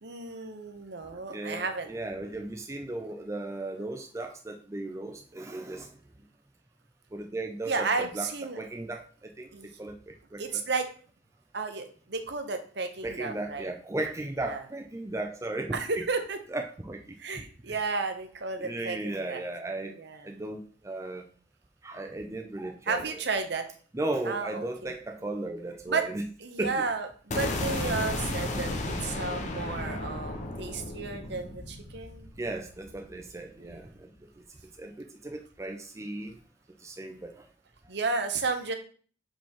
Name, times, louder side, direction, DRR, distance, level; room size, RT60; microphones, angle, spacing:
voice 1, 0.0-1.9 7.6-8.6 9.5-9.7 10.4-10.9 11.5-13.7 14.4-14.6 15.7-16.4 17.2-19.4 19.9-20.3 22.8-23.7 24.2-25.0 25.9-26.1 26.4-32.3 33.6-33.9 37.9-38.7, right 4 dB, 60° right, 7 dB, 0.9 m, -33 dB
voice 2, 1.3-5.9 7.1-8.3 8.6-9.0 9.4-9.5 9.8-9.9 10.3-10.4 13.0-16.0 16.5-17.0 17.7-17.8 18.6-19.9 20.2-21.2 21.8-23.0 23.9-26.2 26.6-26.9 32.4-33.9 34.8-36.3 36.8-37.4, right 2 dB, 15° right, 4 dB, 0.5 m, -35 dB
sound 1, 27.3-33.3, left 2 dB, 40° left, 1.0 m, -34 dB
5.9 x 5.1 x 3.6 m, 0.42 s
head